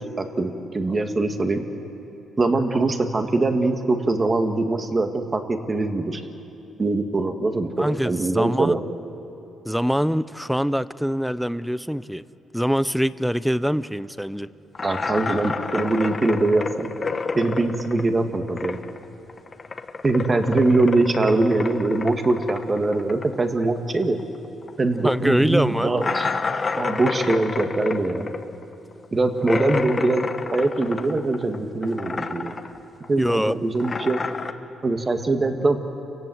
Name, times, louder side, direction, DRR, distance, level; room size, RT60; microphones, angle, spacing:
voice 1, 0.2-1.6 2.4-6.2 6.8-8.8 14.8-16.9 17.4-18.8 20.0-24.2 24.8-26.3 26.7-28.3 29.1-32.5 33.1-34.2 34.8-35.8, right 2 dB, 30° right, 5 dB, 2.0 m, -22 dB
voice 2, 7.8-8.7 9.6-12.2 12.5-14.5 25.0-25.9 33.2-33.6, equal, ahead, 16 dB, 0.6 m, -24 dB
sound 1, 14.7-19.0 19.3-24.4 24.6-24.7 25.1-25.2 26.0-31.6 31.8-32.8 33.0-34.5, left 4 dB, 35° left, 1.2 m, -29 dB
28.5 x 18.0 x 8.0 m, 3.0 s
cardioid pair, 90°, 0 cm